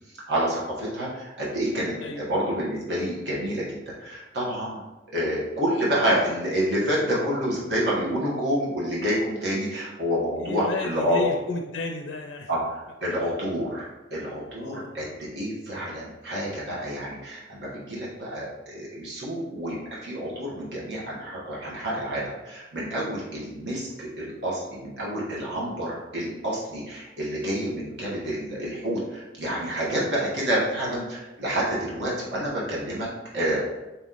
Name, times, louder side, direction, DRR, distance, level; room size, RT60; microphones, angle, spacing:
voice 1, 0.3-4.8 5.1-11.2 12.5-15.1 15.3-19.8 20.0-33.1 33.3-33.6, equal, 65° right, -6 dB, 1.2 m, -28 dB
voice 2, 10.4-12.5 14.6-15.1, left 3 dB, 90° left, 2 dB, 0.4 m, -33 dB
4.3 x 3.0 x 3.8 m, 1.1 s
head